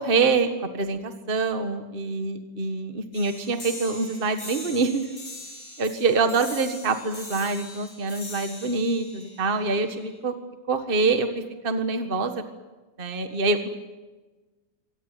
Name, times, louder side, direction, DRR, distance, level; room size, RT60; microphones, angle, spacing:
voice 1, 0.0-5.0 5.8-10.3 10.7-12.4 13.0-13.7, right 4 dB, 30° right, 7 dB, 1.7 m, -25 dB
sound 1, 3.1-10.2, left 2 dB, 55° left, 6.8 m, -41 dB
25.0 x 18.5 x 9.3 m, 1.2 s
omnidirectional pair, 2.0 m